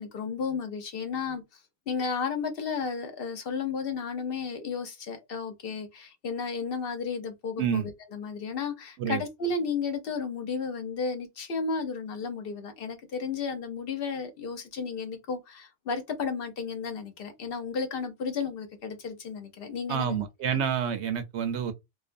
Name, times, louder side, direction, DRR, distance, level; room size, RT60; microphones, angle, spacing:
voice 1, 0.0-1.6 1.9-20.2, left 5 dB, 60° left, 0.7 m, -33 dB
voice 2, 19.9-21.7, right 8 dB, 75° right, 0.8 m, -28 dB
2.5 x 2.2 x 2.5 m
omnidirectional pair, 1.2 m